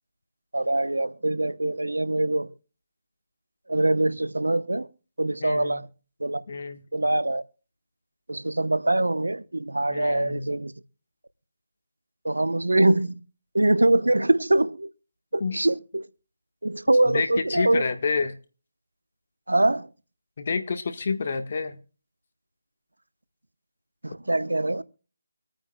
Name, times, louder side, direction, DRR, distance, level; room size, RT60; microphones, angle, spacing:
voice 1, 0.5-2.5 3.7-4.9 5.2-5.9 6.2-6.4 6.9-7.4 8.3-10.7 12.2-13.2 13.5-14.9 15.3-16.1 16.6-17.9 19.5-19.9 24.0-24.8, right 2 dB, 85° right, 0.8 m, -23 dB
voice 2, 5.4-5.8 6.5-6.8 9.9-10.5 15.4-15.6 17.0-18.4 20.4-21.8, left 4 dB, 45° left, 1.4 m, -29 dB
25.0 x 9.2 x 2.3 m
figure-of-eight pair, 155°, 0 cm